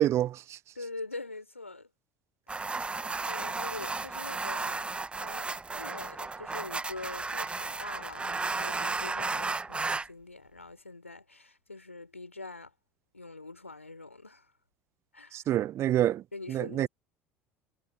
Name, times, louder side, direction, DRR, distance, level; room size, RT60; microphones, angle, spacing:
voice 1, 0.0-0.6 15.3-16.2 16.5-16.9, right 12 dB, 40° right, 0.6 m, -27 dB
voice 2, 0.7-1.9 3.2-4.9 5.2-5.5 5.7-12.7 13.1-14.5 15.1-15.4 16.3-16.9, left 3 dB, 85° left, 4.6 m, -44 dB
sound 1, 2.5-10.1, right 3 dB, 15° right, 1.2 m, -34 dB
figure-of-eight pair, 65°, 7 cm